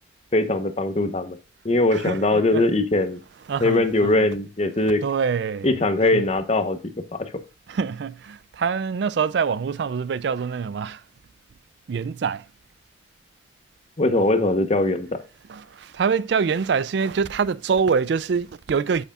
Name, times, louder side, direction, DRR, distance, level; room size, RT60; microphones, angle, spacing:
voice 1, 0.3-1.4 1.6-3.2 3.6-5.0 5.6-6.8 7.2-7.3 14.0-15.1, left 2 dB, 35° left, 0.9 m, -21 dB
voice 2, 1.9-2.6 3.5-4.3 5.0-5.8 6.1-6.2 7.7-11.0 11.9-12.5 15.5-19.0, right 6 dB, 65° right, 0.4 m, -25 dB
8.6 x 8.1 x 2.4 m
head